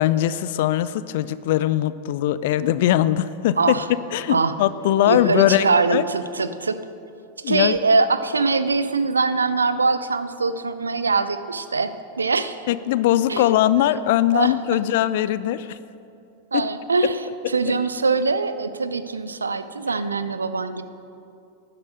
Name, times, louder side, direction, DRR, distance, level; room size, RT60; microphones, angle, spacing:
voice 1, 0.0-3.8 4.1-6.0 7.4-7.8 12.7-15.8 16.5-16.6 17.7-17.8, left 12 dB, 50° left, 16 dB, 0.3 m, -21 dB
voice 2, 3.6-3.9 4.3-4.5 5.1-6.8 7.4-12.6 13.3-13.5 14.3-14.5 16.5-20.8, right 4 dB, 75° right, 12 dB, 0.6 m, -22 dB
11.5 x 9.8 x 6.4 m, 2.6 s
figure-of-eight pair, 90°, 0 cm